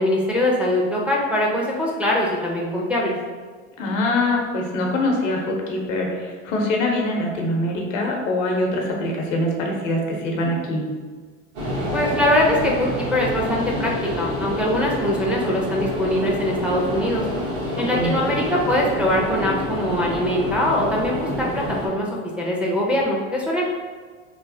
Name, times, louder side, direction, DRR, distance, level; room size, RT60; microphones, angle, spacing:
voice 1, 0.0-3.1 11.9-17.3 17.8-22.1 22.4-23.6, left 1 dB, 5° right, -3 dB, 0.3 m, -22 dB
voice 2, 3.8-10.8 17.9-18.2, left 1 dB, 85° left, 0 dB, 0.7 m, -23 dB
sound 1, 11.5-21.9, equal, 75° right, 1.1 m, -27 dB
3.0 x 2.0 x 2.6 m, 1.5 s
hypercardioid pair, 90°, 37 cm